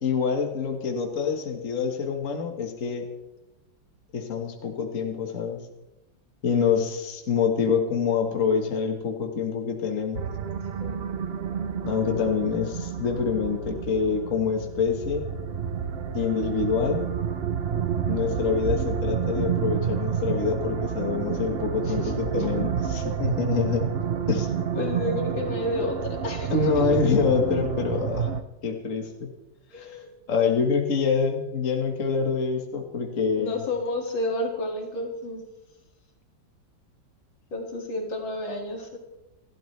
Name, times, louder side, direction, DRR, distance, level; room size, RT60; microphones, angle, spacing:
voice 1, 0.0-3.1 4.1-5.6 6.4-10.2 11.8-15.3 16.1-17.0 18.1-23.9 24.3-24.5 26.5-28.3 28.6-29.3 29.8-29.9 30.3-33.6, left 5 dB, 45° left, 2 dB, 1.9 m, -26 dB
sound 1, 10.1-28.4, right 7 dB, 60° right, 0.6 m, -29 dB
voice 2, 10.8-11.1 21.8-22.5 24.7-26.5 29.7-30.1 33.4-35.4 37.5-39.0, left 2 dB, 85° left, 0 dB, 3.2 m, -31 dB
29.5 x 12.5 x 3.3 m, 0.99 s
omnidirectional pair, 2.1 m